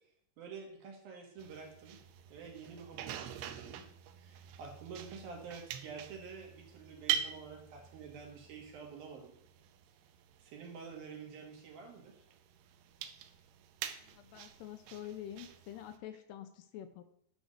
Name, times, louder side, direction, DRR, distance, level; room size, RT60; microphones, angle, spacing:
voice 1, 0.4-2.0 2.3-3.8 4.2-9.4 10.4-12.2, right 5 dB, 60° right, 1 dB, 3.2 m, -48 dB
sound 1, 1.4-16.0, right 10 dB, 85° right, 2.7 m, -44 dB
voice 2, 14.0-17.0, left 11 dB, 80° left, 9 dB, 2.6 m, -47 dB
11.5 x 4.8 x 6.5 m, 0.69 s
omnidirectional pair, 5.0 m